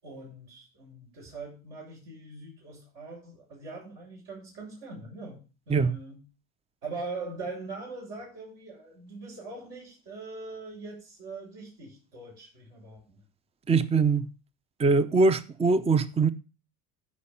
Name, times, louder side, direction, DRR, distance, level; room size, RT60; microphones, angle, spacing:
voice 1, 0.0-6.2 6.8-13.2, right 3 dB, 65° right, 7.2 m, -42 dB
voice 2, 13.7-14.3 14.8-16.3, right 4 dB, 15° right, 0.6 m, -22 dB
12.5 x 5.5 x 5.6 m
hypercardioid pair, 80°, 47 cm